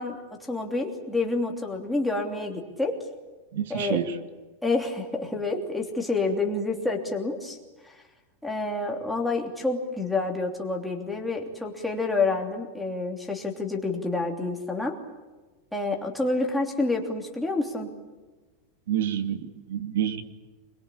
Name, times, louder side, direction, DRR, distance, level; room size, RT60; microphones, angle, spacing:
voice 1, 0.0-3.0 3.7-4.0 4.6-7.6 7.8-8.0 8.4-15.0 15.7-17.9, left 3 dB, ahead, 0 dB, 3.1 m, -28 dB
voice 2, 3.5-4.0 18.9-20.2, right 10 dB, 75° right, 9 dB, 2.6 m, -28 dB
26.5 x 22.5 x 8.6 m, 1.2 s
supercardioid pair, 170°, 0 cm